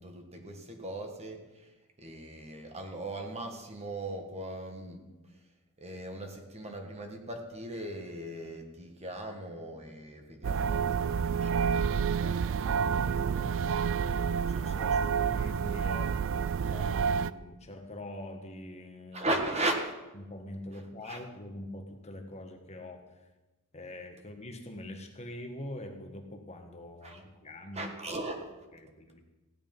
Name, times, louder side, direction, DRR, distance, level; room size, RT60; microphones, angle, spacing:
voice 1, 0.0-5.4 5.8-13.8 19.1-19.9 20.7-21.2 27.0-28.7, right 1 dB, 30° right, 3 dB, 1.6 m, -38 dB
sound 1, 10.4-17.3, right 6 dB, 60° right, 0.4 m, -29 dB
voice 2, 14.5-16.2 16.6-19.3 20.2-23.0 23.7-27.8 28.8-29.2, left 1 dB, 30° left, 4 dB, 1.5 m, -44 dB
16.0 x 10.0 x 5.4 m, 1.1 s
head